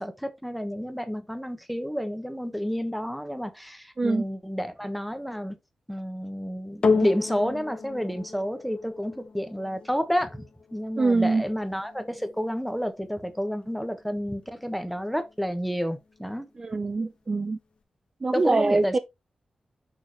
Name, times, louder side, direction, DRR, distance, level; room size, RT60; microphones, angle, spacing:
voice 1, 0.0-5.5 5.9-10.4 10.7-16.5 18.3-19.0, equal, ahead, 1.2 m, -30 dB
sound 1, 6.8-15.4 16.1-16.2, left 4 dB, 60° left, 1.2 m, -33 dB
voice 2, 11.0-11.4 16.6-17.6 18.2-19.0, right 3 dB, 35° right, 0.5 m, -24 dB
6.3 x 6.1 x 3.1 m
wide cardioid pair, 110°, 2 cm